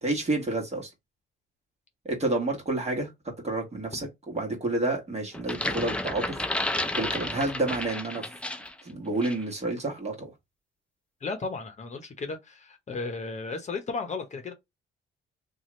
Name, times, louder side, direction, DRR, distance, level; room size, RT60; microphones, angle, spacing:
voice 1, 0.0-0.9 2.0-3.1 3.4-6.7 6.9-8.2 8.8-10.3, right 2 dB, 35° right, 1.4 m, -29 dB
sound 1, 5.3-8.8 9.2-9.4, left 1 dB, 5° left, 0.4 m, -31 dB
voice 2, 11.2-14.5, left 4 dB, 35° left, 0.8 m, -34 dB
2.7 x 2.4 x 3.0 m
cardioid pair, 90°, 20 cm